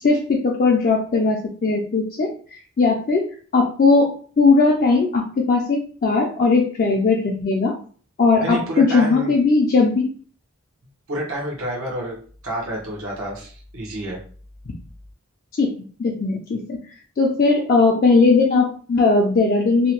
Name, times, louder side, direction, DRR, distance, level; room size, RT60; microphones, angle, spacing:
voice 1, 0.0-2.3 2.8-7.8 8.2-10.1 14.7-14.8 15.5-16.8 17.2-19.9, left 3 dB, 40° left, 0 dB, 0.4 m, -18 dB
voice 2, 8.4-9.3 11.1-12.1 12.4-14.2, right 1 dB, 80° right, -3 dB, 0.9 m, -29 dB
2.7 x 2.1 x 2.9 m, 0.43 s
head